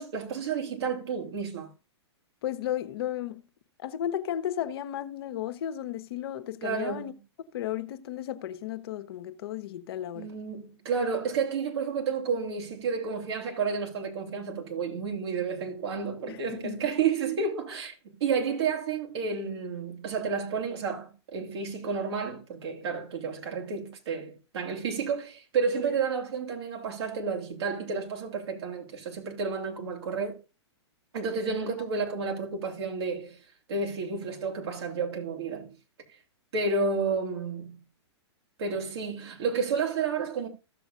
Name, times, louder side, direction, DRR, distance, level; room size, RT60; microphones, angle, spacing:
voice 1, 0.0-1.7 6.6-7.1 10.1-30.4 31.1-33.4 33.7-35.7 36.5-37.8 38.6-40.5, right 5 dB, 65° right, 3.2 m, -31 dB
voice 2, 2.4-3.4 3.8-7.1 7.5-10.3 16.3-16.9 31.6-31.7, left 11 dB, 60° left, 1.0 m, -34 dB
15.0 x 7.1 x 2.5 m
hypercardioid pair, 125°, 15 cm